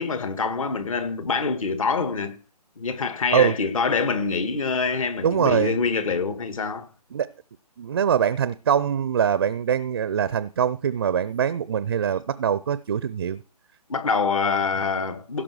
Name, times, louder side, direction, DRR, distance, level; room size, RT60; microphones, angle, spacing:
voice 1, 0.0-2.4 2.8-6.9 13.9-15.4, left 5 dB, 55° left, 1.7 m, -25 dB
voice 2, 5.2-5.8 7.1-7.3 7.8-13.4, right 8 dB, 35° right, 0.4 m, -23 dB
16.5 x 6.0 x 4.6 m
figure-of-eight pair, 145°, 21 cm